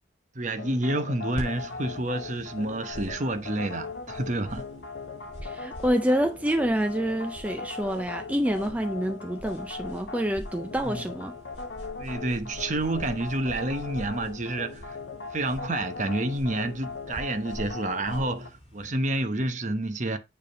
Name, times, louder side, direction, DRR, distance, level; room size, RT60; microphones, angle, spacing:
voice 1, 0.3-4.6 10.8-11.0 12.0-15.0 15.3-20.2, right 2 dB, 40° right, 0.9 m, -29 dB
sound 1, 0.6-18.5, left 4 dB, 65° left, 1.0 m, -39 dB
sound 2, 1.3-18.9, equal, 30° left, 4.5 m, -45 dB
voice 2, 5.4-11.4, equal, 5° right, 0.3 m, -27 dB
9.0 x 3.5 x 5.3 m
head